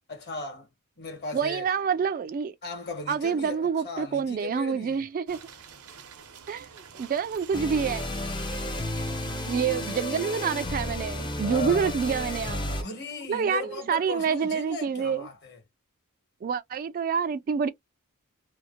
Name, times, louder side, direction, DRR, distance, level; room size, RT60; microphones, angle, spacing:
voice 1, 0.1-0.7 1.0-1.7 2.6-5.0 8.9-9.4 11.4-11.9 12.5-15.6, left 3 dB, 50° left, 1.2 m, -37 dB
voice 2, 1.3-2.5 3.1-5.4 6.5-6.7 6.9-8.1 9.5-12.6 13.3-15.3 16.4-17.7, right 6 dB, 40° right, 0.3 m, -27 dB
sound 1, 5.3-10.4, right 6 dB, 85° right, 0.8 m, -48 dB
sound 2, 7.5-12.8, left 1 dB, 20° left, 0.5 m, -32 dB
2.8 x 2.1 x 2.4 m
head